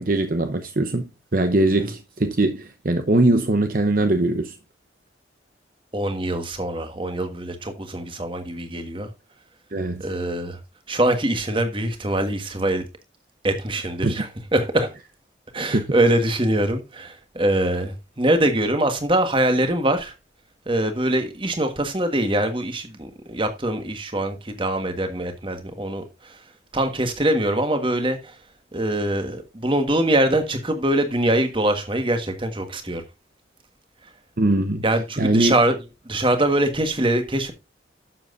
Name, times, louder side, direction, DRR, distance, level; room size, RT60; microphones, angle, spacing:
voice 1, 0.0-4.6 9.7-10.1 14.0-14.2 15.7-15.8 34.4-34.8 35.2-35.5, right 2 dB, 45° right, 0.8 m, -21 dB
voice 2, 5.9-9.1 10.0-10.6 10.9-12.8 13.4-14.9 15.5-20.1 20.7-26.4 26.7-28.3 28.7-33.0 34.8-35.7 36.0-37.5, right 1 dB, 25° right, 1.5 m, -23 dB
11.5 x 7.4 x 2.6 m
head